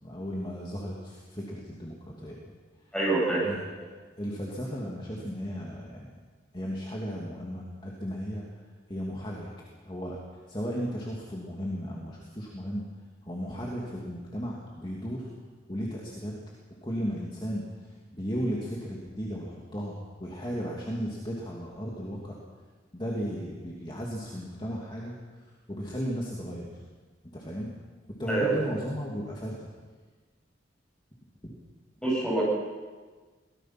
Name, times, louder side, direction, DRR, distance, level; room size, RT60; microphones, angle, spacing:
voice 1, 0.0-2.4 3.4-3.9 4.2-6.1 6.5-8.4 8.9-9.5 9.9-10.2 10.5-12.8 13.2-15.3 15.7-16.3 16.8-22.4 22.9-25.1 25.7-26.7 27.3-27.7 28.2-29.7 31.4-31.5, equal, 25° left, -3 dB, 2.5 m, -35 dB
voice 2, 2.9-3.5 28.3-28.5 32.0-32.4, right 2 dB, 5° left, -4 dB, 8.0 m, -26 dB
23.5 x 18.5 x 6.0 m, 1.4 s
head